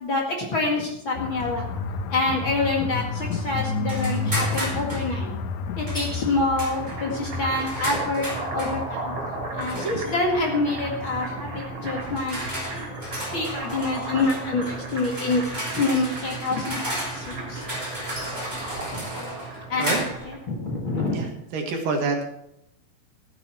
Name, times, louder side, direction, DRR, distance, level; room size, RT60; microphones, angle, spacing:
voice 1, 0.0-1.7 2.1-5.3 5.8-8.3 8.5-9.1 9.5-12.9 13.3-17.7 18.9-19.0 19.7-21.2, left 2 dB, 40° left, -1 dB, 2.3 m, -27 dB
sound 1, 1.1-15.0, left 4 dB, 70° left, 1.9 m, -33 dB
sound 2, 3.9-5.1 5.9-6.1 6.6-8.8 9.6-10.1 11.2-11.4 12.0-20.3, equal, 5° right, 4.4 m, -34 dB
sound 3, 6.6-20.4, right 2 dB, 50° right, 4.8 m, -35 dB
voice 2, 21.1-22.2, right 3 dB, 70° right, 2 dB, 3.4 m, -27 dB
16.0 x 9.2 x 4.5 m, 0.79 s
omnidirectional pair, 4.1 m